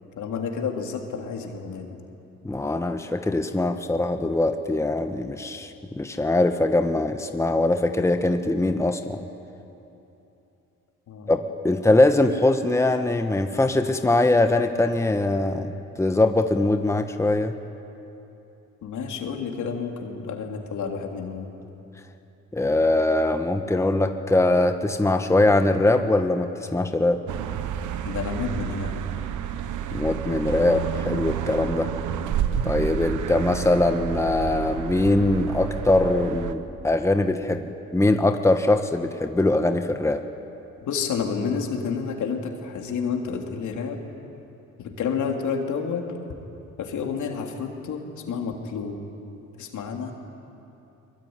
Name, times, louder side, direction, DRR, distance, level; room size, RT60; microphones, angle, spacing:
voice 1, 0.2-2.0 11.1-11.3 18.8-21.5 28.0-29.0 40.8-44.1 44.8-46.2 46.8-49.0 49.6-50.1, left 6 dB, 75° left, 2 dB, 3.2 m, -30 dB
voice 2, 2.4-9.2 11.3-17.5 22.5-27.2 29.9-31.9 32.6-40.2, left 2 dB, 10° left, 7 dB, 1.3 m, -22 dB
sound 1, 27.3-36.5, right 9 dB, 80° right, 1.2 m, -30 dB
24.0 x 22.0 x 9.6 m, 2.9 s
cardioid pair, 90°, 30 cm